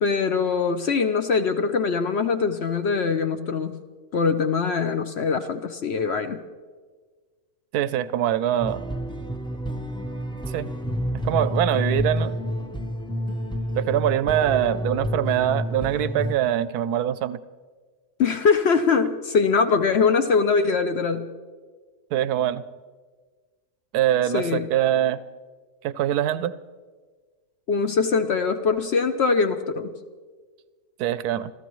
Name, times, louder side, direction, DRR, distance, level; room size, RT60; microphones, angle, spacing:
voice 1, 0.0-3.8 4.1-6.4 18.2-21.3 24.3-24.7 27.7-29.9, left 5 dB, 60° left, 8 dB, 0.7 m, -22 dB
voice 2, 7.7-8.9 10.5-10.7 11.2-12.3 13.7-17.4 22.1-22.6 23.9-25.2 25.8-26.5 31.0-31.5, right 11 dB, 85° right, 15 dB, 1.1 m, -23 dB
sound 1, 8.6-16.4, equal, 5° left, 0.3 m, -29 dB
27.5 x 14.0 x 3.1 m, 1.5 s
omnidirectional pair, 1.6 m